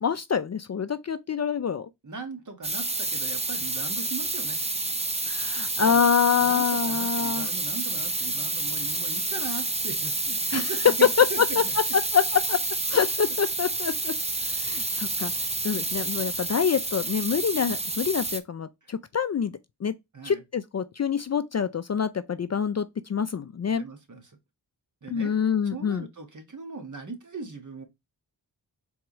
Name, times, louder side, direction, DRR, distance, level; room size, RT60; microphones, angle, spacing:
voice 1, 0.0-1.9 5.3-7.5 10.5-10.6 11.2-11.3 11.9-12.6 12.9-14.1 14.5-15.3 15.6-19.5 19.8-19.9 20.2-23.9 25.1-26.1, left 7 dB, 40° left, 0.4 m, -26 dB
voice 2, 2.0-4.6 5.8-11.8 18.8-18.9 20.1-20.4 23.7-24.4 25.0-25.3 25.7-27.8, right 4 dB, 45° right, 1.6 m, -38 dB
sound 1, 2.6-18.4, right 2 dB, 15° right, 0.7 m, -29 dB
4.5 x 3.6 x 3.0 m
cardioid pair, 50°, 43 cm